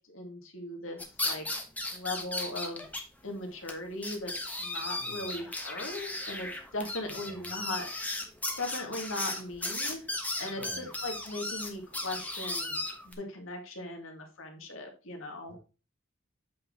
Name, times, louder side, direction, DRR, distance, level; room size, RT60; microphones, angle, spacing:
voice 1, 0.1-1.5 1.9-2.8 3.2-4.3 4.6-8.2 8.6-10.1 10.4-15.5, left 2 dB, 80° left, 3 dB, 2.1 m, -39 dB
sound 1, 1.0-3.0 3.3-3.4 3.7-3.8 4.0-13.1, left 2 dB, 10° left, 1.2 m, -36 dB
voice 2, 5.0-5.4 7.1-7.5 10.5-10.9 15.5-15.6, right 2 dB, 60° right, 1 dB, 2.8 m, -49 dB
8.4 x 4.4 x 4.7 m, 0.32 s
head